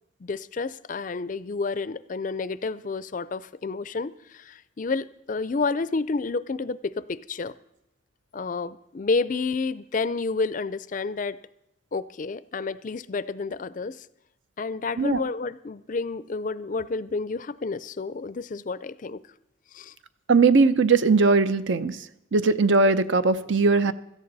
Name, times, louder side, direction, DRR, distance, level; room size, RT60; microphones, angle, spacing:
voice 1, 0.2-7.5 8.3-11.4 11.9-14.1 14.6-19.2 19.7-19.9, left 4 dB, 40° left, 17 dB, 0.4 m, -30 dB
voice 2, 20.3-22.0 22.3-23.9, right 4 dB, 70° right, 13 dB, 0.7 m, -19 dB
17.0 x 14.0 x 4.0 m, 0.85 s
head